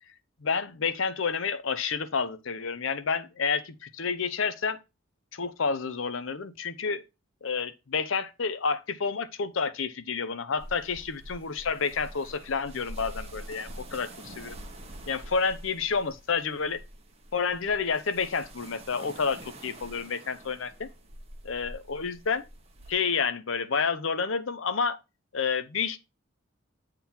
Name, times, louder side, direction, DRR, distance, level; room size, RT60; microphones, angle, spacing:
voice 1, 0.4-4.8 5.3-7.0 7.4-14.1 14.4-14.5 15.1-16.8 17.3-20.9 21.4-22.4 22.9-25.0 25.3-26.0, left 5 dB, 70° left, 0.7 m, -29 dB
sound 1, 10.6-22.9, right 1 dB, 30° right, 1.2 m, -46 dB
8.7 x 3.8 x 4.3 m
head